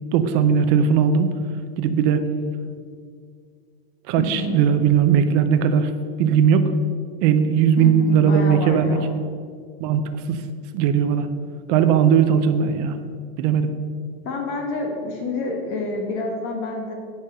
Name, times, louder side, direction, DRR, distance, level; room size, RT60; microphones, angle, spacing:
voice 1, 0.1-1.3 1.8-2.2 4.1-5.9 6.2-6.7 7.2-9.0 9.8-10.0 10.3-10.4 10.7-11.3 11.7-13.0 13.4-13.7, right 7 dB, 45° right, 9 dB, 0.7 m, -18 dB
voice 2, 4.2-4.6 7.8-9.1 14.2-16.9, left 3 dB, 40° left, 2 dB, 1.7 m, -28 dB
8.8 x 5.4 x 6.7 m, 2.1 s
supercardioid pair, 160°, 31 cm